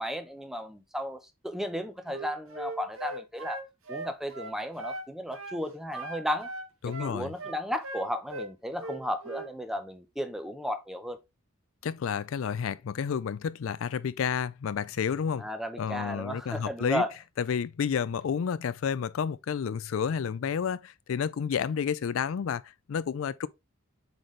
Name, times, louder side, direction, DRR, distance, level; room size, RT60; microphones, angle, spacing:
voice 1, 0.0-3.6 3.9-6.5 6.8-11.2 15.4-17.1, equal, ahead, 0.7 m, -34 dB
Wind instrument woodwind instrument, 2.1-5.1 5.3-5.6 5.9-8.5 8.8-9.5, right 2 dB, 70° right, 1.2 m, -39 dB
voice 2, 6.8-7.3 11.8-15.5 15.8-17.0 17.4-23.5, left 7 dB, 70° left, 0.4 m, -30 dB
7.8 x 4.1 x 3.2 m
head